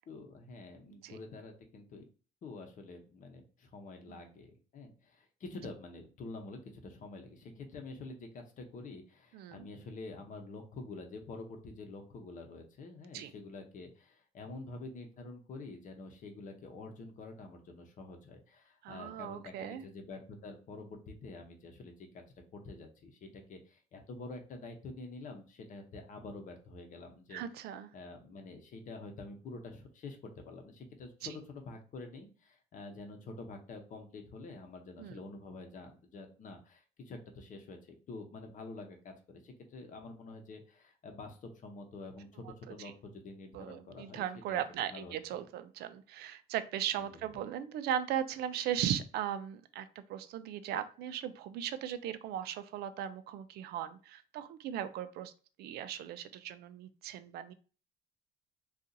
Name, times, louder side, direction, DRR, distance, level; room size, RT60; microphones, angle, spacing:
voice 1, 0.1-2.0 2.4-22.2 22.5-27.4 27.9-44.6 44.9-45.1 46.9-47.3, left 3 dB, 50° left, 4 dB, 0.8 m, -47 dB
voice 2, 9.3-9.7 13.1-13.3 18.8-19.8 27.3-27.9 35.0-35.2 42.4-42.5 42.8-42.9 43.5-55.3 55.6-57.5, right 10 dB, 75° right, 12 dB, 0.4 m, -38 dB
2.7 x 2.4 x 3.8 m, 0.37 s
cardioid pair, 110°, 17 cm